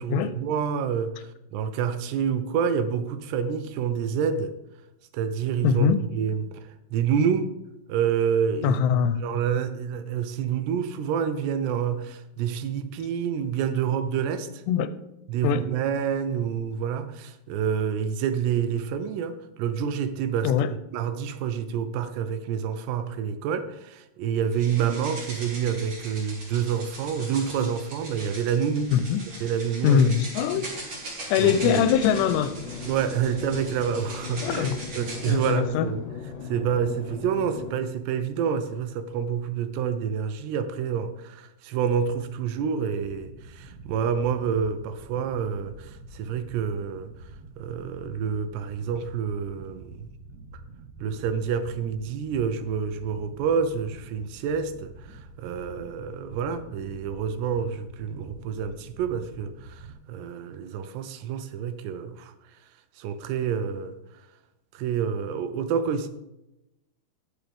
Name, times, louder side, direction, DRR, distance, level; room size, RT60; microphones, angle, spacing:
voice 1, 0.0-4.5 5.1-7.5 7.9-14.6 15.3-20.5 20.9-28.9 29.4-30.1 30.5-30.7 31.4-31.9 32.8-36.0 36.4-47.1 47.6-50.1 50.5-50.6 51.0-62.3 63.0-64.0 64.7-66.1, right 7 dB, 85° right, 3.0 m, -28 dB
voice 2, 5.6-6.0 8.6-9.2 14.7-15.0 15.4-15.6 20.4-20.7 28.9-29.2 29.8-30.7 31.3-32.6 34.4-34.8 35.3-35.9, left 8 dB, 90° left, 2.8 m, -22 dB
sound 1, 24.5-35.5, right 2 dB, 40° right, 3.5 m, -40 dB
sound 2, 31.4-37.7, left 5 dB, 65° left, 2.2 m, -38 dB
sound 3, 43.0-59.9, right 2 dB, 65° right, 2.2 m, -46 dB
19.5 x 6.5 x 3.5 m
omnidirectional pair, 4.8 m